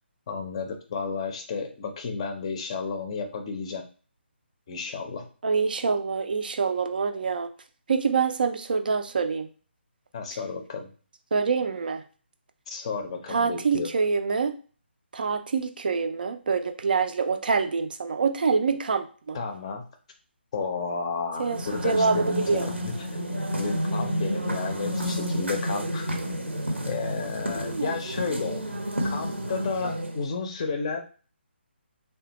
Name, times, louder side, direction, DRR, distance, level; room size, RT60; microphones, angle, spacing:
voice 1, 0.3-3.8 4.7-5.3 10.1-10.9 12.7-13.9 19.3-19.8 20.5-23.1 23.6-26.1 26.9-28.6 29.0-31.0, left 5 dB, 30° left, 4 dB, 0.5 m, -32 dB
voice 2, 5.4-7.5 7.9-9.5 11.3-12.0 13.3-14.6 15.1-19.4 21.4-22.7 27.5-28.0, right 5 dB, 50° right, 8 dB, 0.4 m, -26 dB
sound 1, 21.4-30.3, equal, 90° right, 0.8 m, -30 dB
3.3 x 2.2 x 2.9 m, 0.38 s
figure-of-eight pair, 145°, 6 cm